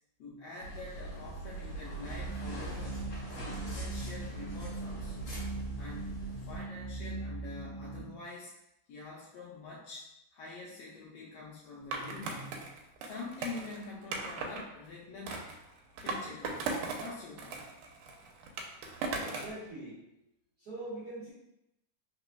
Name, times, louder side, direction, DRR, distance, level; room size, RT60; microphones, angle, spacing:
voice 1, 0.2-5.3 5.8-8.5 8.9-15.5 16.0-17.7, left 3 dB, 85° left, -5 dB, 1.4 m, -46 dB
sound 1, 0.6-6.6, right 2 dB, 45° left, 1.6 m, -42 dB
sound 2, 2.0-8.0, right 3 dB, 35° right, 1.2 m, -40 dB
Skateboard, 11.9-14.6 15.3-17.1 17.4-19.6, right 3 dB, 90° right, 2.0 m, -38 dB
voice 2, 19.2-20.0 20.6-21.3, right 2 dB, 70° right, -13 dB, 0.8 m, -42 dB
4.0 x 3.7 x 2.2 m, 0.85 s
omnidirectional pair, 3.5 m